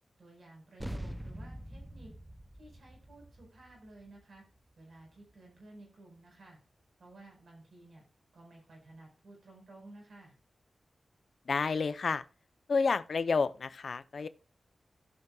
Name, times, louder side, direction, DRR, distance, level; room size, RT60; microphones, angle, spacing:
voice 1, 0.2-2.1 2.6-4.4 4.8-6.6 7.0-8.0 8.3-10.4, right 2 dB, 75° right, 4.8 m, -54 dB
sound 1, 0.8-5.6, equal, 5° right, 0.5 m, -45 dB
voice 2, 11.5-12.2 12.7-14.3, left 4 dB, 65° left, 0.5 m, -30 dB
16.5 x 5.9 x 2.3 m
wide cardioid pair, 120°, 0 cm